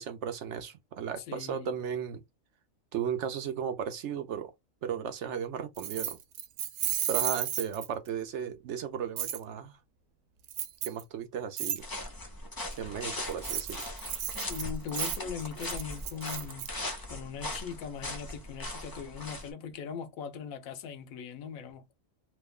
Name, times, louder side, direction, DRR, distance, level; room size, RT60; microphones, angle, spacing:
voice 1, 0.0-2.2 2.9-4.5 4.8-6.2 7.1-9.7 10.8-11.8 12.8-13.8, right 8 dB, 65° right, 0.8 m, -35 dB
voice 2, 1.3-1.7 14.3-16.7 17.1-21.9, left 7 dB, 85° left, 1.1 m, -40 dB
Keys jangling, 5.8-8.1 9.2-9.4 10.5-11.0 11.6-11.8 13.3-16.7, right 11 dB, 90° right, 1.0 m, -33 dB
sound 1, 11.8-19.5, left 1 dB, 25° left, 0.5 m, -39 dB
3.1 x 2.2 x 3.5 m
omnidirectional pair, 1.4 m